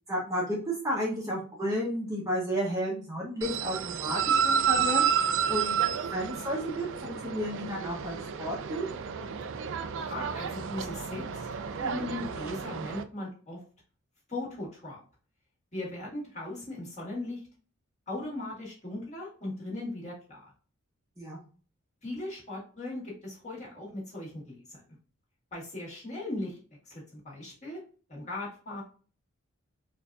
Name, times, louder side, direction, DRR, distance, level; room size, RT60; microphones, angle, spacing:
voice 1, 0.1-5.8 6.1-8.8 21.2-21.4, equal, 15° right, -3 dB, 0.8 m, -32 dB
sound 1, 3.4-13.0, right 7 dB, 60° right, 0.4 m, -30 dB
voice 2, 9.8-11.5 11.8-13.6 14.3-15.0 15.7-17.4 18.1-20.5 22.0-24.8 25.5-26.6 26.9-27.8 28.1-28.8, left 2 dB, 35° left, -5 dB, 1.8 m, -38 dB
4.4 x 2.6 x 2.3 m, 0.39 s
head